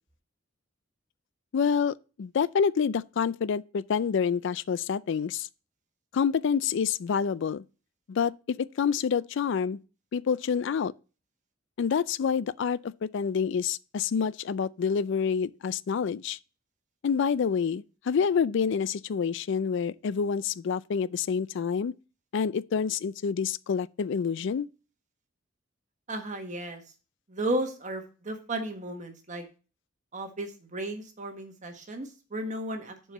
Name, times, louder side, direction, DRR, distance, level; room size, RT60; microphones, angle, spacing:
voice 1, 1.5-5.5 6.1-7.6 8.1-9.8 10.1-10.9 11.8-16.4 17.0-21.9 22.3-24.7, left 6 dB, 65° left, 0.4 m, -27 dB
voice 2, 26.1-26.8 27.3-29.4 30.1-33.1, right 1 dB, 40° right, 1.5 m, -34 dB
7.0 x 4.6 x 6.6 m
head